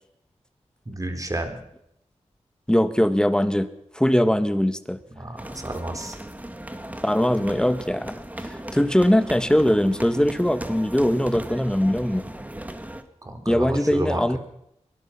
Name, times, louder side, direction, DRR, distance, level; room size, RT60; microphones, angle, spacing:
voice 1, 0.9-1.6 5.2-6.2 13.2-14.4, right 1 dB, 30° right, 6 dB, 4.0 m, -30 dB
voice 2, 2.7-3.7 3.9-5.0 7.0-12.2 13.5-14.4, equal, 5° left, 11 dB, 1.7 m, -21 dB
sound 1, 5.4-13.0, right 1 dB, 15° right, 1.9 m, -37 dB
23.0 x 19.5 x 6.0 m, 0.77 s
wide cardioid pair, 80°, 12 cm